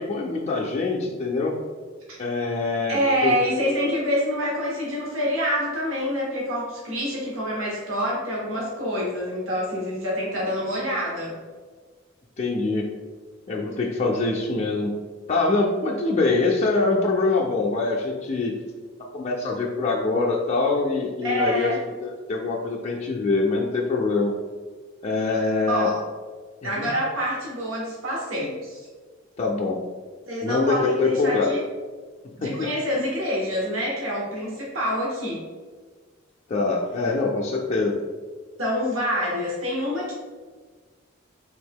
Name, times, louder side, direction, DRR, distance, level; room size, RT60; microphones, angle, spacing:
voice 1, 0.0-1.5 2.2-3.3 12.4-12.9 13.5-14.9 15.3-18.5 19.1-21.7 22.0-24.3 25.0-25.9 26.6-26.9 29.4-29.8 30.4-31.5 32.4-32.7 36.5-38.0, left 3 dB, 35° left, -3 dB, 0.4 m, -24 dB
voice 2, 2.9-11.3 21.2-21.8 25.7-26.0 26.6-28.9 30.3-31.6 32.4-35.4 38.6-40.1, equal, 80° right, -4 dB, 1.0 m, -26 dB
3.5 x 2.8 x 3.5 m, 1.4 s
head